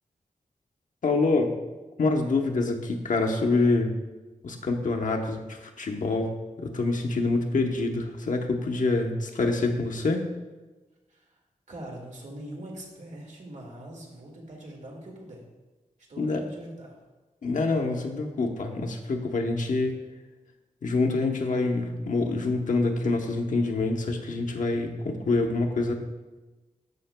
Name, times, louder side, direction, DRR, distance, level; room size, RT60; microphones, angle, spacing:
voice 1, 1.0-1.5 2.0-3.9 4.4-10.3 16.2-16.4 17.4-20.0 20.8-25.9, left 3 dB, 70° left, 2 dB, 0.9 m, -26 dB
voice 2, 11.7-15.4 16.1-17.0, right 1 dB, 65° right, -1 dB, 1.9 m, -42 dB
13.0 x 5.7 x 2.2 m, 1.2 s
wide cardioid pair, 80°, 14 cm